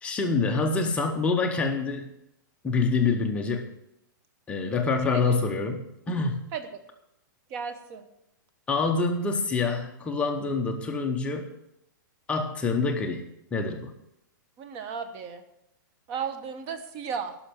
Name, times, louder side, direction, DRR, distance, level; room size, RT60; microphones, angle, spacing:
voice 1, 0.0-2.1 2.6-3.7 4.5-6.4 8.7-11.5 12.3-13.2 13.5-13.9, left 4 dB, 10° left, 3 dB, 0.8 m, -26 dB
voice 2, 5.1-5.4 6.5-6.8 7.5-8.1 14.6-15.4 16.1-17.4, right 6 dB, 30° right, 9 dB, 1.0 m, -35 dB
11.5 x 6.2 x 9.2 m, 0.82 s
hypercardioid pair, 165°, 11 cm